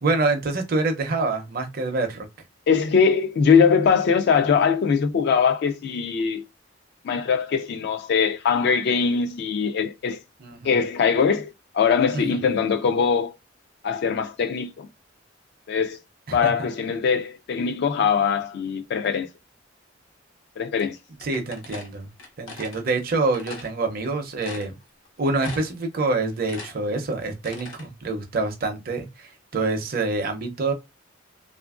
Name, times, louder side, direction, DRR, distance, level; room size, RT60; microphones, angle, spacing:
voice 1, 0.0-2.3 10.4-10.7 12.1-12.4 16.3-16.4 21.2-22.1 22.4-24.8 25.2-30.7, right 3 dB, 50° right, 0.5 m, -26 dB
voice 2, 2.7-6.4 7.0-10.2 10.6-11.5 11.7-13.3 13.8-14.9 15.7-16.0 16.3-19.3 20.6-21.0, left 6 dB, 60° left, 0.3 m, -21 dB
sound 1, 21.2-22.8 23.3-23.7 24.1-24.2 24.4-25.1 25.4-25.8 26.2-27.9, left 3 dB, 80° left, 0.8 m, -40 dB
2.8 x 2.4 x 2.3 m
head